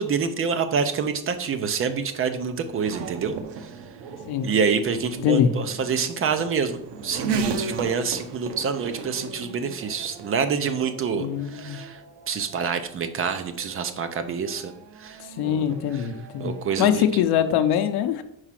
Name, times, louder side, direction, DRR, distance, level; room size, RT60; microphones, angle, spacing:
voice 1, 0.0-3.7 4.4-12.0 12.3-14.7 15.0-15.7 15.9-16.1 16.4-17.0, right 6 dB, 35° right, 10 dB, 0.6 m, -27 dB
Race car auto racing / Accelerating revving vroom, 1.2-17.1, right 5 dB, 85° right, 0.8 m, -37 dB
voice 2, 5.2-5.5 11.2-11.8 15.2-18.2, left 9 dB, 70° left, 8 dB, 0.7 m, -23 dB
4.9 x 4.8 x 5.8 m, 0.75 s
cardioid pair, 155°, 40 cm